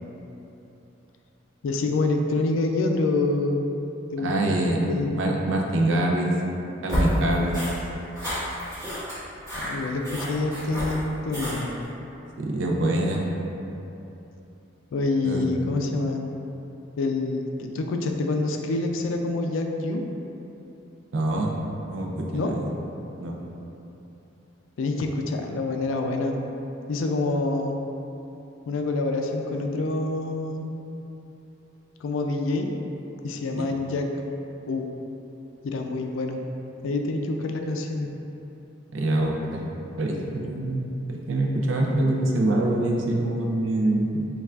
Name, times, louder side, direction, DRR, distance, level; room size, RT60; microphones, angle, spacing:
voice 1, 1.6-3.7 4.1-5.2 9.6-11.7 14.9-16.3 17.0-20.0 22.3-22.6 24.8-26.4 26.9-27.8 28.7-30.8 32.0-32.7 33.2-34.1 34.7-34.9 35.6-36.4 36.8-38.1, left 2 dB, 85° left, 3 dB, 0.3 m, -26 dB
voice 2, 4.2-4.8 5.1-6.3 6.8-7.5 12.4-13.3 15.2-15.5 21.1-21.5 21.9-22.6 23.2-23.4 33.6-33.7 38.9-39.6 40.0-40.8 41.3-44.3, right 1 dB, 75° right, 0 dB, 0.5 m, -24 dB
sound 1, 6.9-11.8, equal, 15° right, 1.4 m, -30 dB
5.4 x 2.4 x 2.4 m, 3.0 s
head